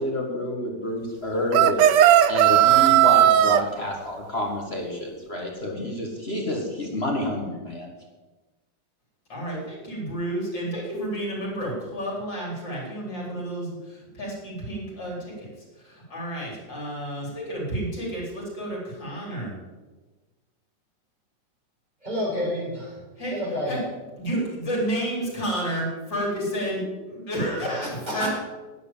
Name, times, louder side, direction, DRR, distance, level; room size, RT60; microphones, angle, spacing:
voice 1, 0.0-7.9, left 1 dB, 35° left, 0 dB, 1.9 m, -29 dB
sound 1, 1.5-3.6, right 12 dB, 80° right, 1.2 m, -16 dB
voice 2, 9.3-15.5 15.8-19.5 23.2-23.4 23.7-23.8 24.2-28.3, right 1 dB, 85° left, -4 dB, 4.9 m, -30 dB
voice 3, 22.0-23.0 23.3-23.8 27.7-28.3, left 1 dB, 25° right, -4 dB, 5.0 m, -29 dB
11.0 x 9.8 x 7.4 m, 1.2 s
omnidirectional pair, 1.9 m